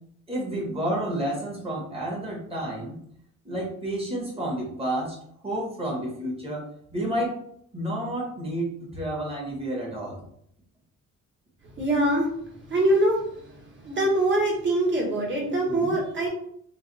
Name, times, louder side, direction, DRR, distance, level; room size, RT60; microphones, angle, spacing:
voice 1, 0.3-2.9 3.4-5.1 5.4-6.6 6.9-7.3 7.7-10.2 15.7-15.9, right 1 dB, 20° right, -3 dB, 1.2 m, -30 dB
voice 2, 11.8-12.3 12.7-16.3, right 1 dB, 40° right, -2 dB, 1.3 m, -24 dB
3.2 x 2.3 x 4.0 m, 0.69 s
cardioid pair, 155°, 30 cm